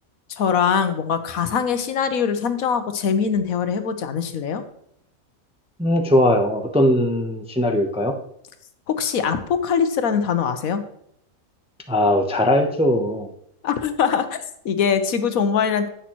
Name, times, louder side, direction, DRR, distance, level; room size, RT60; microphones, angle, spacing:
voice 1, 0.3-4.6 8.9-10.8 13.6-15.9, left 7 dB, 75° left, 9 dB, 1.2 m, -22 dB
voice 2, 5.8-8.1 11.9-13.3, left 1 dB, 5° right, 4 dB, 0.5 m, -19 dB
10.0 x 8.1 x 3.0 m, 0.72 s
omnidirectional pair, 1.5 m